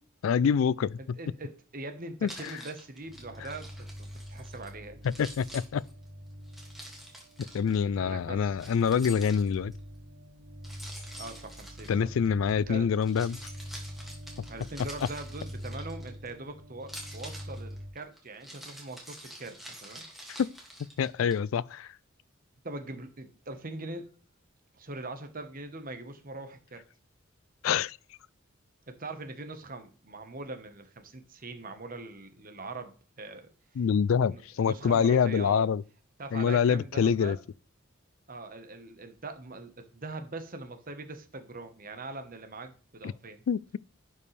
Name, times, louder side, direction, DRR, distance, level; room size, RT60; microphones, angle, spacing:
voice 1, 0.2-1.0 2.2-2.5 5.2-5.8 7.5-9.7 11.9-13.4 20.4-20.5 21.0-21.9 27.6-28.0 33.8-35.8 36.3-37.4 43.0-43.1 43.5-43.8, left 7 dB, 80° left, 0.3 m, -26 dB
voice 2, 1.0-5.0 8.0-8.6 11.2-11.9 12.5-12.9 14.5-20.0 22.6-24.1 24.7-26.8 28.9-33.5 34.3-35.7 36.2-37.4 38.3-43.4, right 2 dB, 45° right, 1.2 m, -42 dB
Keys jangling, 2.3-4.7 5.0-7.8 8.6-9.8 10.6-12.5 12.9-16.3 16.8-21.3, equal, ahead, 2.1 m, -47 dB
sound 1, 3.0-17.9, equal, 85° right, 3.5 m, -45 dB
11.0 x 5.3 x 3.3 m
head